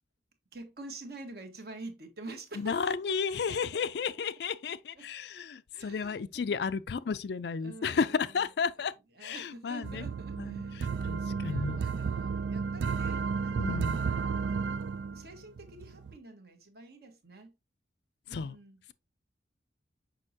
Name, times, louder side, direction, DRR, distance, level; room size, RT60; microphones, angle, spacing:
voice 1, 0.5-4.2 4.7-5.1 5.7-6.6 7.6-8.5 8.8-8.9 9.1-13.8 14.4-14.6 15.1-17.5 18.3-18.8, right 2 dB, 55° right, 1.3 m, -48 dB
voice 2, 2.6-8.9 9.2-10.1 10.4-11.8 13.6-14.0 18.3-18.6, left 5 dB, 60° left, 0.4 m, -33 dB
sound 1, 9.8-16.2, right 5 dB, 75° right, 0.3 m, -33 dB
6.5 x 5.3 x 2.7 m
head